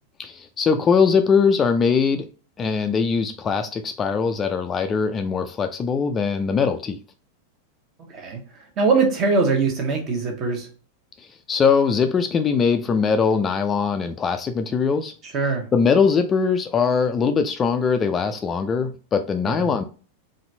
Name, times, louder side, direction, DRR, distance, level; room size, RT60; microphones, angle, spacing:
voice 1, 0.2-2.3 2.6-7.0 11.2-15.1 15.7-19.8, left 5 dB, 20° left, 0.3 m, -21 dB
voice 2, 8.1-8.4 8.8-10.7 15.3-15.7 19.5-19.7, right 4 dB, 35° right, 1.0 m, -22 dB
4.1 x 2.6 x 2.6 m
figure-of-eight pair, 90°, 0 cm